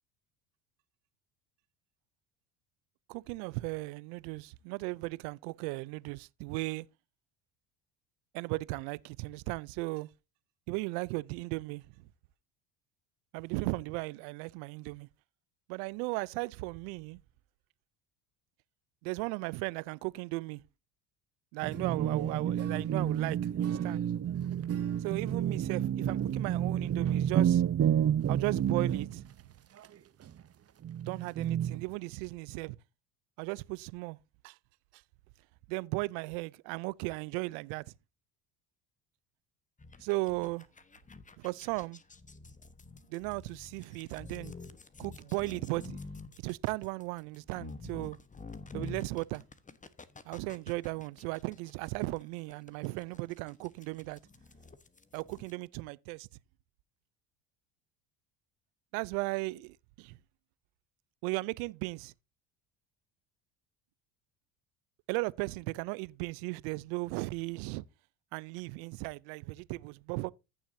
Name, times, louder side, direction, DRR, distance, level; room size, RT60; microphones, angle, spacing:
voice 1, 3.1-6.9 8.3-10.1 10.7-11.8 13.3-15.1 15.7-17.2 19.0-20.6 21.5-24.0 25.0-27.6 28.3-29.2 31.1-32.8 33.4-34.2 34.4-34.6 35.7-37.8 40.0-40.7 41.4-42.0 43.1-44.6 45.0-46.0 46.4-48.2 48.7-49.4 50.3-54.2 55.1-56.3 58.9-60.2 61.2-62.1 65.1-67.8 68.3-70.3, right 24 dB, 75° right, 0.6 m, -36 dB
sound 1, 21.6-29.3 30.3-30.4 30.8-31.8, right 9 dB, 30° right, 0.8 m, -30 dB
sound 2, 39.8-55.5, left 3 dB, 15° left, 1.2 m, -48 dB
15.0 x 7.1 x 2.7 m
hypercardioid pair, 75°, 45 cm